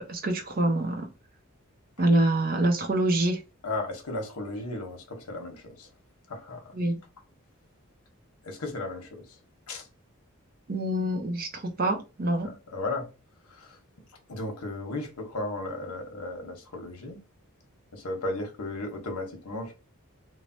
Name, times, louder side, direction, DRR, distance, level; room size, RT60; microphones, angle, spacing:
voice 1, 0.1-1.1 2.0-3.4 6.7-7.0 10.7-12.5, right 1 dB, 40° right, 0.5 m, -25 dB
voice 2, 3.6-5.9 6.3-6.7 8.4-9.2 9.7-9.9 12.4-13.1 13.5-13.8 14.3-17.2 17.9-19.7, left 2 dB, 85° left, 0.9 m, -35 dB
3.1 x 2.1 x 2.6 m
head